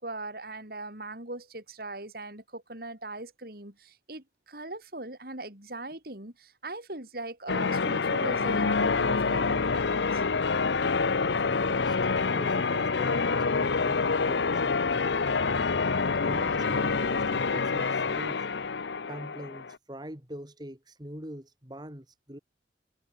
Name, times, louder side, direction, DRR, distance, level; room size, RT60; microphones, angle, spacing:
voice 1, 0.0-10.2, right 2 dB, 55° right, 5.5 m, -40 dB
Church bell, 7.5-19.8, left 4 dB, 80° left, 0.8 m, -27 dB
voice 2, 11.2-15.4 16.0-18.5 19.1-22.4, equal, 25° right, 3.7 m, -43 dB
head